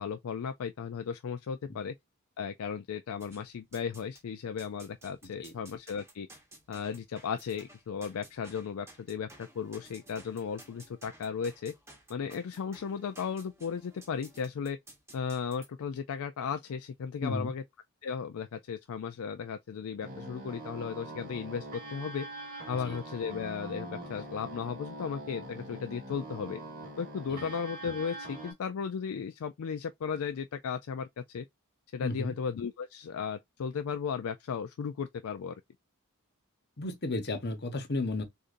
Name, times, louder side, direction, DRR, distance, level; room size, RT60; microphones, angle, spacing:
voice 1, 0.0-1.9 2.4-6.3 6.7-11.7 12.1-14.8 15.1-17.6 18.0-22.3 22.7-26.6 27.0-31.5 31.9-35.6, left 6 dB, 70° left, 0.4 m, -35 dB
sound 1, 3.2-4.2 4.6-15.7, right 1 dB, 10° right, 1.3 m, -55 dB
voice 2, 5.2-5.5 17.2-17.5 22.7-23.0 27.3-27.5 32.0-32.4 36.8-38.2, left 2 dB, 50° left, 1.0 m, -34 dB
sound 2, 20.0-28.5, right 1 dB, 40° right, 2.1 m, -43 dB
6.6 x 2.6 x 2.6 m
head